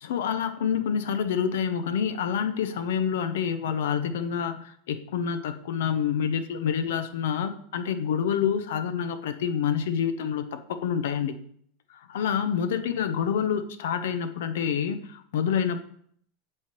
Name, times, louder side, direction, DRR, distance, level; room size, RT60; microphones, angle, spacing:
voice 1, 0.0-11.4 12.1-15.8, left 7 dB, 80° left, 10 dB, 0.7 m, -27 dB
8.6 x 3.2 x 4.5 m, 0.65 s
supercardioid pair, 120°, 0 cm